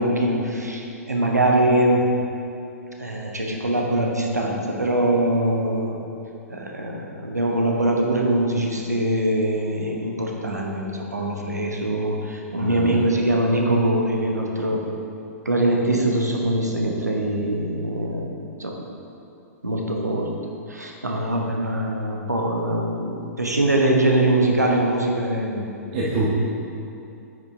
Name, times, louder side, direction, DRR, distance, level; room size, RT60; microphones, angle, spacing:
voice 1, 0.0-2.1 3.0-6.0 6.5-14.9 15.4-18.3 18.6-18.8 19.6-20.3 20.7-25.7, right 1 dB, 85° right, 0 dB, 1.1 m, -23 dB
voice 2, 12.6-13.0 25.9-26.3, right 2 dB, 40° right, -6 dB, 1.2 m, -25 dB
9.2 x 5.5 x 3.7 m, 2.7 s
figure-of-eight pair, 110°, 9 cm